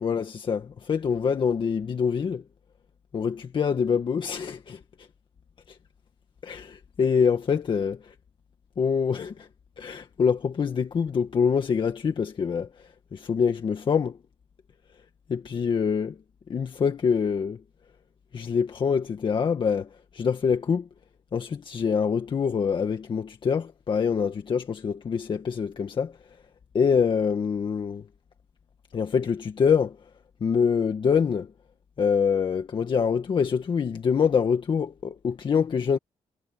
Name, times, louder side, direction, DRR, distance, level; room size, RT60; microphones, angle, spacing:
voice 1, 0.0-2.4 3.1-4.8 5.7-5.8 6.4-8.1 8.8-9.5 9.8-14.2 15.3-16.2 16.5-17.6 18.3-20.9 21.3-26.1 26.7-28.1 28.9-30.0 30.4-31.5 32.0-36.0, left 6 dB, 45° left, 1.9 m, -25 dB
cardioid pair, 110°, 11 cm